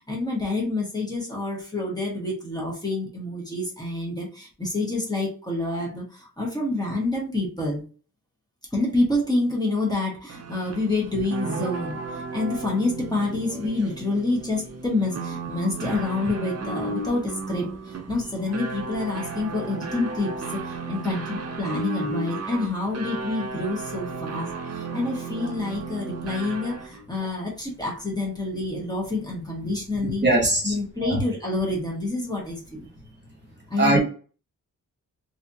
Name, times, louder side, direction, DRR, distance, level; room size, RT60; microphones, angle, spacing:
voice 1, 0.0-7.8 8.7-30.2 30.6-32.8 33.7-34.0, left 2 dB, 10° left, 1.2 m, -28 dB
sound 1, 10.3-27.0, right 3 dB, 50° right, 0.6 m, -34 dB
voice 2, 30.0-31.2 33.8-34.0, right 2 dB, 35° right, 1.2 m, -22 dB
4.0 x 2.9 x 2.7 m
wide cardioid pair, 175°, 32 cm